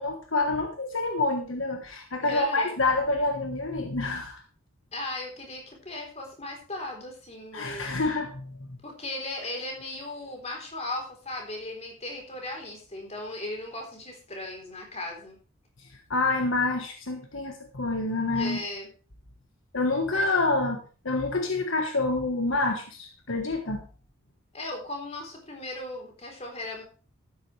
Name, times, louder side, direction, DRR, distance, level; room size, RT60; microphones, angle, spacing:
voice 1, 0.0-4.4 7.5-8.7 15.8-18.6 19.7-20.8 21.0-23.8, left 2 dB, 65° left, 4 dB, 1.4 m, -27 dB
voice 2, 2.2-2.8 4.9-8.0 8.8-15.4 18.4-18.9 20.0-20.5 24.5-26.8, left 2 dB, 30° left, 1 dB, 3.8 m, -37 dB
12.5 x 9.9 x 3.3 m, 0.37 s
head